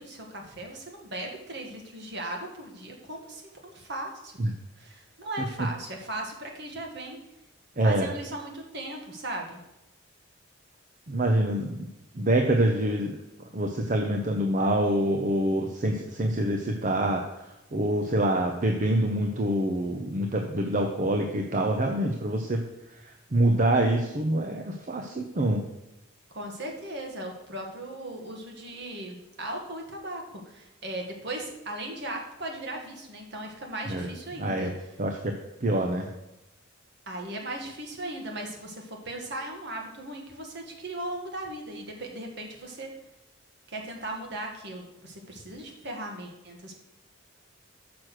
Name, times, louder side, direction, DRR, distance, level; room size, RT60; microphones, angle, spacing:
voice 1, 0.0-4.3 4.8-7.2 7.8-9.6 26.3-34.7 37.1-42.9 43.7-46.8, right 1 dB, 55° right, 1 dB, 1.7 m, -37 dB
voice 2, 7.8-8.1 11.1-11.8 12.1-13.2 13.5-22.6 22.9-25.6 33.9-34.1 34.4-34.7 35.0-35.4 35.6-36.1, right 1 dB, 35° right, 3 dB, 0.7 m, -26 dB
6.5 x 6.1 x 6.2 m, 0.92 s
head